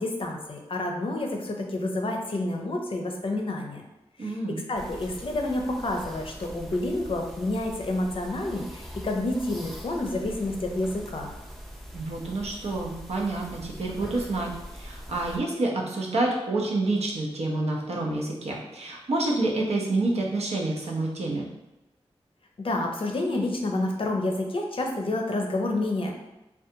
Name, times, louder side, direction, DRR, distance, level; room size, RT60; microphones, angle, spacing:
voice 1, 0.0-3.8 4.2-11.3 22.6-26.1, left 2 dB, 55° left, 2 dB, 0.5 m, -29 dB
voice 2, 4.2-4.6 11.9-14.5 14.8-21.5, right 2 dB, 75° right, -2 dB, 0.6 m, -28 dB
sound 1, 4.7-15.4, equal, ahead, 0.4 m, -43 dB
2.5 x 2.3 x 2.7 m, 0.98 s
wide cardioid pair, 60°, 11 cm